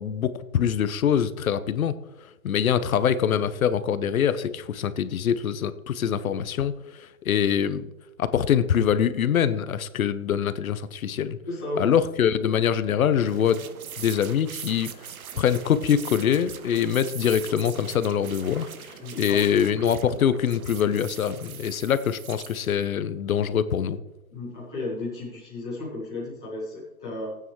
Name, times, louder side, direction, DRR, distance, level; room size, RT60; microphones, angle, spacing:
voice 1, 0.0-1.9 2.4-6.7 7.0-7.9 8.2-11.4 11.8-13.7 14.0-14.9 15.4-24.0, left 8 dB, 75° left, 14 dB, 0.9 m, -24 dB
voice 2, 11.5-11.9 19.0-19.6 24.3-27.4, left 2 dB, 5° left, -10 dB, 0.5 m, -34 dB
sound 1, 13.3-22.8, right 8 dB, 80° right, 1.1 m, -41 dB
16.5 x 9.0 x 3.1 m, 1.1 s
hypercardioid pair, 170°, 42 cm